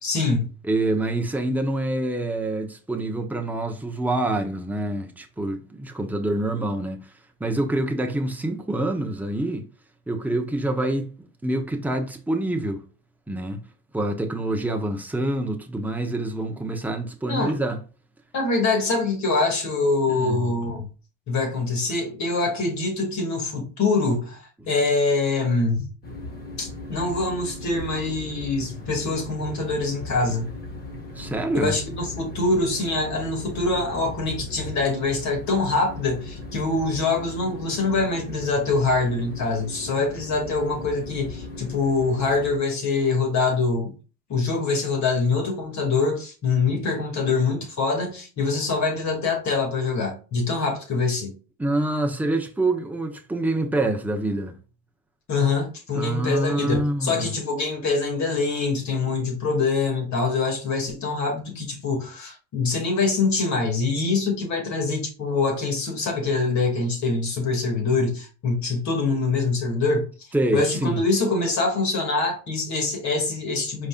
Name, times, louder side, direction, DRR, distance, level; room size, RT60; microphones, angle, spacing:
voice 1, 0.0-0.5 17.3-17.6 18.3-20.9 21.3-25.9 26.6-30.5 31.5-43.9 44.3-51.3 55.3-70.1 70.5-73.9, left 3 dB, 45° left, 2.4 m, -24 dB
voice 2, 0.6-7.1 7.4-9.7 10.1-12.8 13.3-13.6 13.9-17.8 20.1-20.6 24.6-24.7 31.1-31.8 51.6-54.5 55.9-57.3 70.3-71.0, right 1 dB, 5° right, 0.9 m, -26 dB
sound 1, 26.0-42.6, left 2 dB, 25° left, 1.6 m, -38 dB
4.8 x 4.3 x 2.4 m
supercardioid pair, 90°, 38 cm